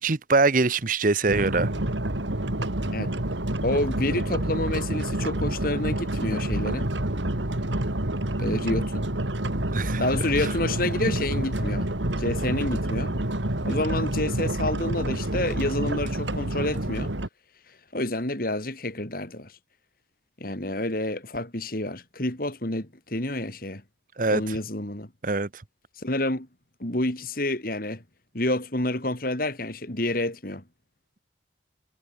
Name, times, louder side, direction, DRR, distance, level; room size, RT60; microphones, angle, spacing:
voice 1, 0.0-1.7 9.7-10.0 24.2-24.6 25.2-25.5, right 3 dB, 45° right, 0.9 m, -23 dB
sound 1, 1.3-17.3, right 1 dB, 80° right, 3.0 m, -28 dB
voice 2, 3.6-6.9 8.4-9.1 10.0-11.9 12.2-13.2 13.6-17.1 17.9-19.5 20.4-23.8 24.3-25.1 26.0-26.5 26.8-28.0 28.3-30.6, left 1 dB, 50° left, 3.2 m, -28 dB
head